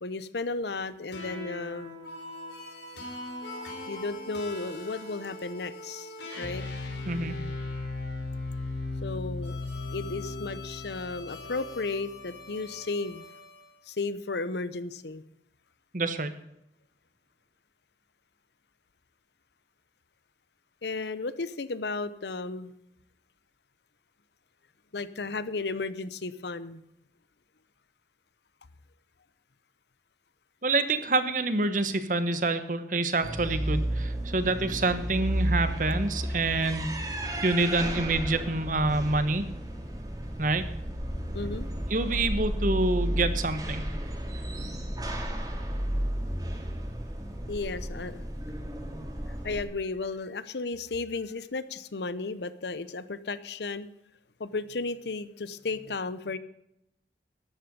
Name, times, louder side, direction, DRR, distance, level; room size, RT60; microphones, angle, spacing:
voice 1, 0.0-1.9 3.9-6.6 9.0-9.6 9.9-13.2 13.9-15.2 20.8-22.7 24.9-26.8 41.3-41.7 47.5-48.2 49.4-53.9 54.4-56.4, left 3 dB, 70° left, 15 dB, 0.8 m, -34 dB
sound 1, 1.1-13.6, left 2 dB, 85° left, 3.6 m, -38 dB
voice 2, 7.1-7.4 15.9-16.4 30.6-37.1 37.4-39.4 40.4-40.6 41.9-43.8, right 2 dB, 45° right, 11 dB, 1.1 m, -27 dB
sound 2, 33.2-49.6, right 1 dB, 20° right, 2.2 m, -32 dB
13.0 x 10.0 x 5.3 m, 0.81 s
head